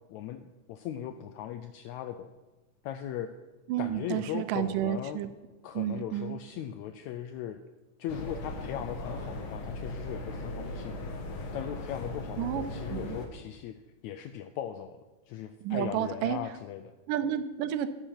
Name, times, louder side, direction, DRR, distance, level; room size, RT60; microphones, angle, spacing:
voice 1, 0.1-2.3 2.8-3.3 3.8-5.2 5.6-7.6 8.0-11.1 11.5-13.7 14.0-15.0 15.3-16.9, left 10 dB, 85° left, 8 dB, 1.6 m, -38 dB
voice 2, 3.7-5.3 5.8-6.4 12.4-12.6 12.9-13.2 15.6-16.4 17.1-17.9, right 11 dB, 85° right, 11 dB, 2.3 m, -31 dB
sound 1, 8.1-13.3, left 2 dB, 60° left, 2.1 m, -38 dB
10.0 x 9.0 x 5.8 m, 1.2 s
omnidirectional pair, 3.7 m